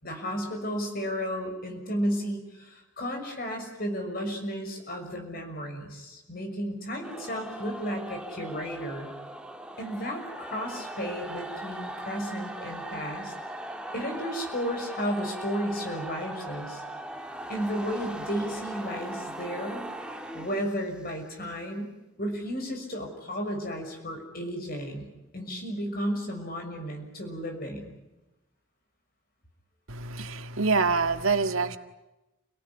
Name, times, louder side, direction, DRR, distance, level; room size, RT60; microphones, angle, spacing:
voice 1, 0.0-9.1 9.8-13.3 13.9-16.8 17.5-19.8 20.3-21.9 22.2-25.1 25.3-28.0, equal, 45° left, 3 dB, 6.2 m, -33 dB
sound 1, 7.0-21.2, right 1 dB, 5° right, 1.7 m, -39 dB
voice 2, 29.9-31.8, right 4 dB, 75° right, 8 dB, 1.8 m, -26 dB
29.5 x 18.5 x 9.7 m, 1.0 s
head